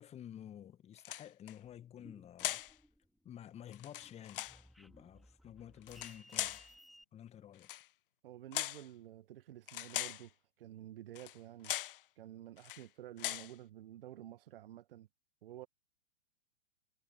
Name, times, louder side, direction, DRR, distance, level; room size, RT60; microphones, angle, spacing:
voice 1, 0.0-2.6 3.2-4.5 4.8-6.6 7.1-7.7, left 10 dB, 20° left, 1.9 m, -51 dB
sound 1, 1.0-1.5 2.4-2.7 3.7-4.6 5.8-6.7 7.6-7.9 8.5-8.9 9.7-10.3 11.1-11.4 11.6-12.0 12.6-12.8 13.2-13.5, left 14 dB, 50° left, 1.2 m, -40 dB
sound 2, 2.0-3.3 3.7-7.0, equal, ahead, 3.7 m, -61 dB
voice 2, 8.2-11.8 12.2-15.1 15.4-15.7, right 13 dB, 50° right, 1.5 m, -51 dB
figure-of-eight pair, 110°, 36 cm